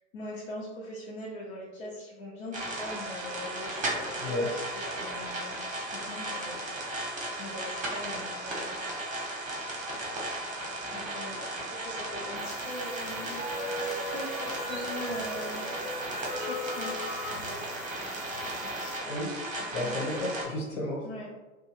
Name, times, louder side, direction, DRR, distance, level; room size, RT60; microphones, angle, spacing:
voice 1, 0.1-5.6 5.9-8.8 10.9-13.4 14.1-16.1 16.4-16.9 17.3-17.7 18.4-18.9 19.8-20.0 21.0-21.3, left 1 dB, 55° left, -6 dB, 0.8 m, -42 dB
sound 1, 2.5-20.4, right 1 dB, 20° right, 1.0 m, -36 dB
sound 2, 12.4-19.0, equal, 90° left, 1.0 m, -38 dB
voice 2, 19.1-19.5 19.7-21.1, left 1 dB, 70° left, -3 dB, 1.3 m, -32 dB
2.7 x 2.3 x 3.0 m, 1.1 s
figure-of-eight pair, 95°, 40 cm